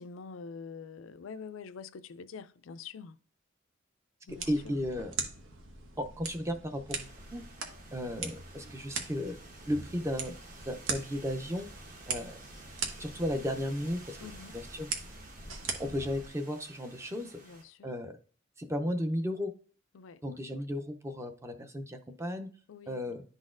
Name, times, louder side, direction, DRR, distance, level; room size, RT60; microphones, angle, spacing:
voice 1, 0.0-3.2 4.3-4.9 14.2-14.6 17.4-17.9 19.9-20.2 22.7-23.2, left 5 dB, 85° left, 0.4 m, -46 dB
sound 1, 4.3-16.3, right 4 dB, 85° right, 1.1 m, -41 dB
voice 2, 4.5-5.1 6.0-7.4 7.9-9.4 9.6-10.4 10.7-11.7 12.1-12.4 13.0-14.2 14.5-14.9 15.8-17.4 17.8-18.1 18.6-19.5 20.2-22.5 22.9-23.2, equal, 15° right, 0.5 m, -34 dB
sound 2, 6.9-17.6, right 2 dB, 45° right, 1.1 m, -53 dB
11.0 x 4.0 x 2.5 m
head